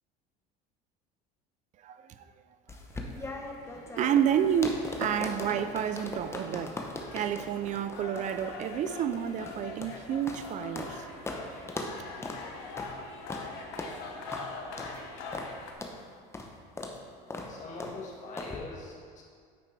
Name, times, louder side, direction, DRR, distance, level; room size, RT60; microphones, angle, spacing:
voice 1, 1.8-2.2 3.1-3.4 3.8-11.1 11.7-12.0, right 9 dB, 45° right, 0.4 m, -30 dB
sound 1, 2.7-11.0 11.3-11.4 11.7-11.9 12.2-12.4 12.8-12.9 13.3-13.5 13.8-13.9 14.3-14.5 14.8-15.0 15.3-15.5 15.8-16.0 16.3-16.5 16.8-17.0 17.3-17.5 17.8-18.0 18.4-18.6, left 2 dB, 15° left, 0.8 m, -39 dB
sound 2, 3.4-15.7, left 3 dB, 80° left, 0.9 m, -44 dB
voice 2, 17.5-19.2, left 3 dB, 45° left, 1.8 m, -42 dB
8.6 x 5.7 x 3.2 m
supercardioid pair, 105°, 18 cm